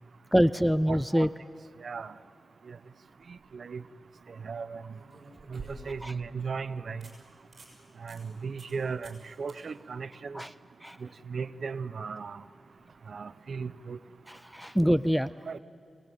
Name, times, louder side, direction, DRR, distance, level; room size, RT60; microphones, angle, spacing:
voice 1, 0.3-1.3 6.0-6.1 10.3-10.5 10.8-11.0 14.3-15.3, equal, ahead, 15 dB, 0.5 m, -25 dB
voice 2, 0.9-1.3 1.8-2.1 2.7-2.8 3.3-3.8 4.4-4.8 5.5-7.0 8.0-10.4 11.3-12.4 13.1-14.0 15.5-15.6, right 5 dB, 70° right, 15 dB, 0.8 m, -36 dB
sound 1, 3.1-3.5 4.9-6.2 6.6-6.7 7.0-7.1 7.5-7.7 8.1-8.2 8.6-8.8 9.0-9.2 9.5-9.6 12.7-12.8, right 2 dB, 50° right, 7.3 m, -48 dB
25.5 x 19.0 x 9.2 m, 2.6 s
cardioid pair, 75°, 0 cm